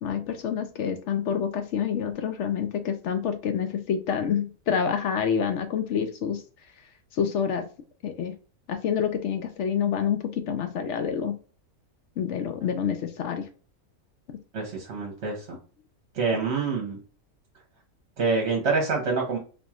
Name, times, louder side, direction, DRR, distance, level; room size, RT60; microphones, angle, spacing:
voice 1, 0.0-6.4 7.1-7.7 8.0-8.3 8.7-11.4 12.2-13.5 14.3-14.4, left 7 dB, 65° left, 7 dB, 0.8 m, -27 dB
voice 2, 14.5-15.6 16.1-17.0 18.2-19.4, right 4 dB, 55° right, 0 dB, 1.1 m, -26 dB
4.1 x 3.0 x 2.3 m, 0.39 s
omnidirectional pair, 1.5 m